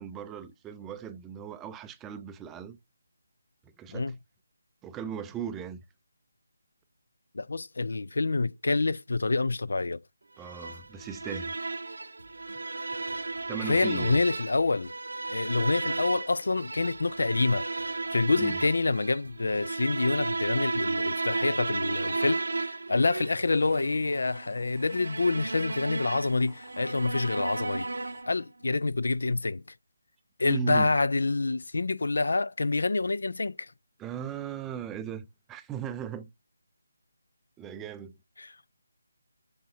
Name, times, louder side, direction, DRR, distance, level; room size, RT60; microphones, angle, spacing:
voice 1, 0.0-2.8 3.8-4.1 4.8-5.8 10.4-11.6 13.5-14.2 18.4-18.6 30.5-30.9 34.0-36.3 37.6-38.1, right 8 dB, 10° right, 0.4 m, -38 dB
voice 2, 7.3-10.0 13.6-14.9 15.3-17.6 18.1-27.9 28.3-29.6 30.4-33.7 38.4-38.6, left 3 dB, 60° left, 0.3 m, -27 dB
sound 1, 10.4-28.4, right 3 dB, 65° right, 0.8 m, -34 dB
Drum kit / Drum, 10.7-14.3 14.5-20.1, right 1 dB, 85° right, 1.1 m, -58 dB
sound 2, 23.1-28.2, left 6 dB, 20° left, 0.9 m, -59 dB
6.6 x 6.5 x 2.6 m
figure-of-eight pair, 150°, 0 cm